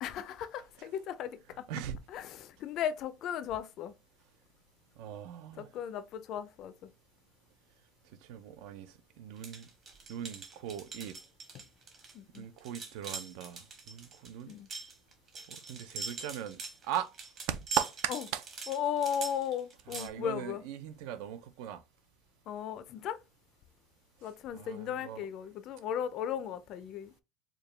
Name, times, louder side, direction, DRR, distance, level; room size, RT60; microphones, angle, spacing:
voice 1, 0.0-1.7 2.1-3.9 5.6-6.9 11.5-11.6 12.1-12.5 14.5-14.7 18.1-18.2 18.7-20.6 22.5-23.2 24.2-27.2, left 9 dB, 40° left, 0.3 m, -36 dB
voice 2, 1.7-2.0 5.0-5.7 8.2-9.7 10.1-11.2 12.4-14.5 15.5-17.1 17.5-18.4 19.9-21.8 24.5-25.2, right 10 dB, 70° right, 0.4 m, -39 dB
sound 1, 9.4-20.1, right 4 dB, 30° right, 1.0 m, -42 dB
4.7 x 2.2 x 3.2 m
cardioid pair, 175°, 0 cm